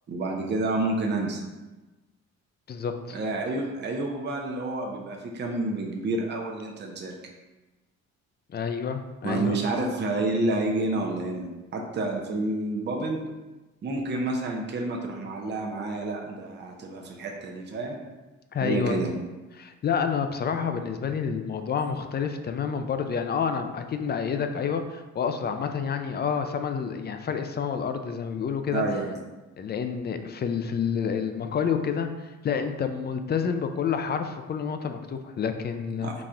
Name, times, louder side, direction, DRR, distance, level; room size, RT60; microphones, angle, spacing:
voice 1, 0.1-1.4 3.1-7.2 9.2-13.2 13.8-18.0 18.6-19.1 21.8-21.9 28.7-29.2 36.0-36.1, right 2 dB, 35° right, 0 dB, 0.7 m, -29 dB
voice 2, 2.7-3.2 8.5-9.6 18.5-19.0 19.6-28.8 29.6-36.1, left 6 dB, 35° left, 7 dB, 0.4 m, -29 dB
4.0 x 2.4 x 4.3 m, 1.1 s
cardioid pair, 90°, 30 cm